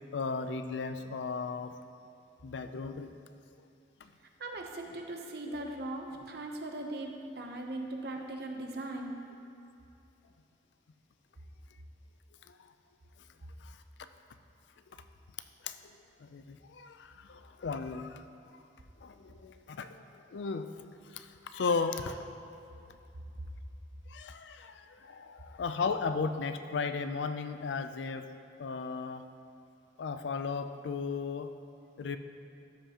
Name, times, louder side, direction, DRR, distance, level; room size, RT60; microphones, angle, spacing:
voice 1, 0.1-1.7 2.4-3.1 15.6-15.7 16.2-18.2 19.0-19.9 20.3-20.7 21.1-21.3 21.5-22.2 24.1-28.3 28.6-29.2 30.0-31.5 32.0-32.2, left 4 dB, 80° left, 9 dB, 0.4 m, -35 dB
voice 2, 4.4-9.2, right 2 dB, 60° right, 2 dB, 0.7 m, -39 dB
12.5 x 5.6 x 2.9 m, 2.6 s
head